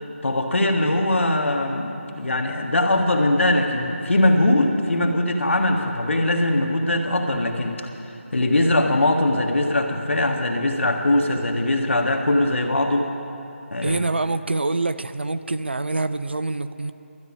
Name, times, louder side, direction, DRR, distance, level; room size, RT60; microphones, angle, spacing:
voice 1, 0.0-13.1 13.7-14.0, left 1 dB, 65° left, 3 dB, 1.5 m, -21 dB
voice 2, 13.8-16.9, right 2 dB, 50° right, 12 dB, 0.4 m, -25 dB
12.5 x 8.3 x 8.7 m, 2.9 s
figure-of-eight pair, 180°, 7 cm